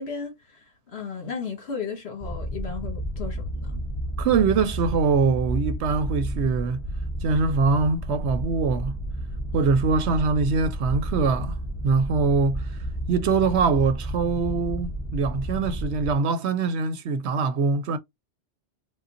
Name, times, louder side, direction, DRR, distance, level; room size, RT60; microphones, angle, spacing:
voice 1, 0.0-3.8, left 5 dB, 60° left, 1.4 m, -35 dB
sound 1, 2.2-16.1, right 1 dB, 15° left, 0.4 m, -31 dB
voice 2, 4.2-6.8 7.2-9.0 9.5-11.5 11.8-12.7 13.1-18.0, right 4 dB, 70° right, 0.8 m, -23 dB
3.8 x 2.2 x 2.5 m
omnidirectional pair, 1.2 m